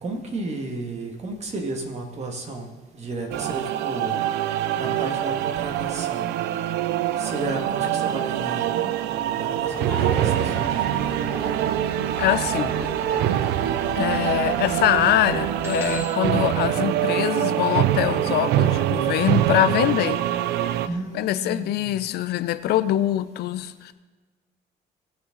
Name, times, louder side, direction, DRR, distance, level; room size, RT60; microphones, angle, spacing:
voice 1, 0.0-4.2 4.8-6.3 7.2-11.2 20.8-22.0, right 2 dB, 40° right, 2 dB, 2.2 m, -33 dB
sound 1, 3.3-20.9, right 12 dB, 80° right, 0.5 m, -24 dB
sound 2, 9.6-16.0, left 2 dB, 10° left, 2.6 m, -35 dB
voice 2, 12.2-12.7 14.0-20.2 21.1-23.9, left 13 dB, 75° left, 13 dB, 0.6 m, -23 dB
sound 3, 15.6-17.6, left 1 dB, 15° right, 1.8 m, -39 dB
19.0 x 6.7 x 4.0 m, 1.4 s
cardioid pair, 110°, 17 cm